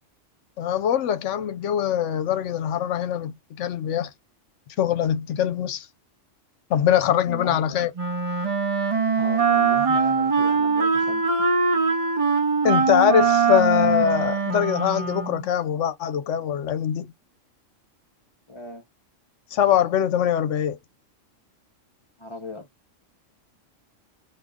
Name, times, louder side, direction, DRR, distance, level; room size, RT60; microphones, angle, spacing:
voice 1, 0.6-4.1 4.8-5.9 6.7-7.9 12.6-17.1 19.5-20.8, left 10 dB, 70° left, 1.0 m, -23 dB
voice 2, 7.3-7.8 9.2-11.2 18.5-18.8 22.2-22.7, left 1 dB, 25° left, 0.8 m, -37 dB
Wind instrument woodwind instrument, 8.0-15.5, right 5 dB, 35° right, 0.6 m, -22 dB
2.7 x 2.2 x 3.6 m
omnidirectional pair, 1.3 m